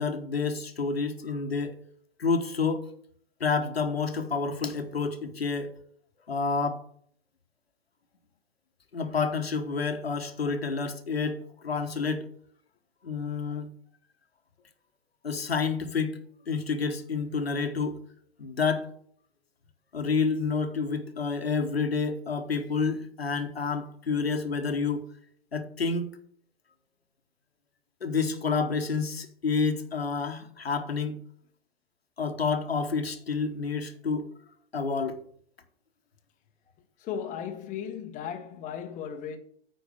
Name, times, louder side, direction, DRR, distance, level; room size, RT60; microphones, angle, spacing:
voice 1, 0.0-1.8 2.2-2.9 3.4-5.7 6.3-6.8 8.9-12.3 13.0-13.7 15.2-16.1 16.5-18.0 18.4-18.9 19.9-25.1 25.5-26.1 28.0-31.2 32.2-34.3 34.7-35.2, left 5 dB, 80° left, 1.1 m, -29 dB
voice 2, 37.0-39.4, left 8 dB, 25° left, 1.0 m, -36 dB
9.3 x 4.5 x 6.5 m
figure-of-eight pair, 100°, 30 cm